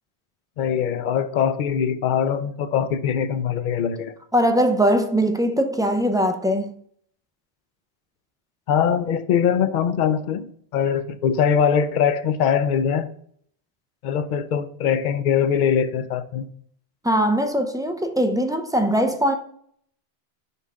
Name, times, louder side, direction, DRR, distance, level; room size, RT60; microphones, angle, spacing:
voice 1, 0.6-4.1 8.7-10.5 10.7-13.1 14.0-16.5, left 8 dB, 55° left, 0.6 m, -22 dB
voice 2, 4.3-6.7 17.0-19.3, equal, 5° right, 0.3 m, -21 dB
5.6 x 3.6 x 5.4 m
omnidirectional pair, 1.1 m